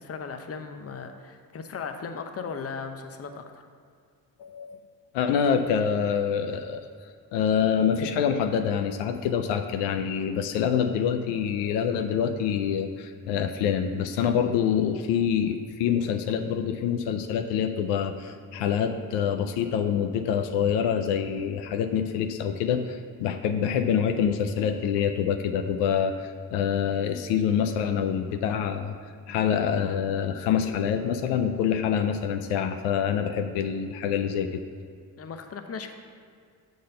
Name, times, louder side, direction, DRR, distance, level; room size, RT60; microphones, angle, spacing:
voice 1, 0.0-3.4 35.2-35.9, left 5 dB, 35° left, 7 dB, 0.7 m, -37 dB
voice 2, 4.4-4.8 5.1-6.9 7.3-28.9 29.3-34.6, left 8 dB, 85° left, 6 dB, 0.6 m, -26 dB
6.8 x 3.9 x 6.5 m, 2.1 s
supercardioid pair, 65°, 41 cm